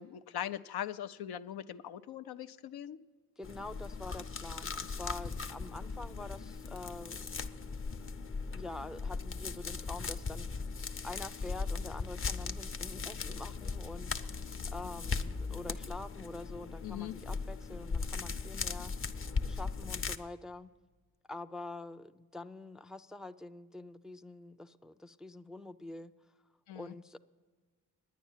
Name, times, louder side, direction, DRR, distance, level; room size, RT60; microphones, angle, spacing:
voice 1, 0.0-3.0 16.8-17.2 26.7-26.9, left 10 dB, 85° left, 11 dB, 0.6 m, -41 dB
sound 1, 3.4-20.2, left 4 dB, 35° left, 0.7 m, -38 dB
voice 2, 3.4-7.3 8.5-10.5 10.9-18.9 19.5-20.7 21.3-26.1 26.7-27.2, left 2 dB, ahead, 10 dB, 0.3 m, -46 dB
10.0 x 9.4 x 7.2 m, 1.5 s
cardioid pair, 60°, 38 cm